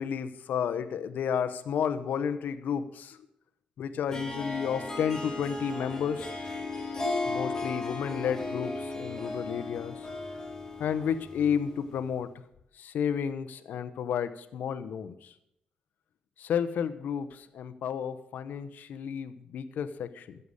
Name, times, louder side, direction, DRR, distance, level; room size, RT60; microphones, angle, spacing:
voice 1, 0.0-3.2 3.8-6.3 7.3-10.1 10.8-12.3 12.7-15.3 16.4-20.4, left 7 dB, 75° left, 11 dB, 0.8 m, -32 dB
Harp, 4.1-11.8, left 2 dB, 15° left, 3.9 m, -36 dB
15.0 x 6.9 x 6.5 m, 0.78 s
cardioid pair, 120°, 3 cm